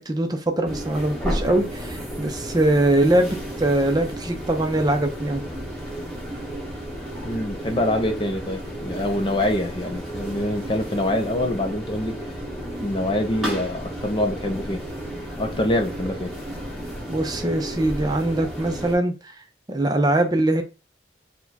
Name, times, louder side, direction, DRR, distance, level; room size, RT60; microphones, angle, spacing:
voice 1, 0.0-5.4 17.1-19.3 19.7-20.6, right 1 dB, 20° right, 0.6 m, -22 dB
sound 1, 0.6-19.0, equal, ahead, 1.9 m, -33 dB
voice 2, 7.2-12.2 12.8-14.8 15.4-16.4, left 1 dB, 30° left, 0.5 m, -25 dB
4.8 x 2.2 x 4.0 m
head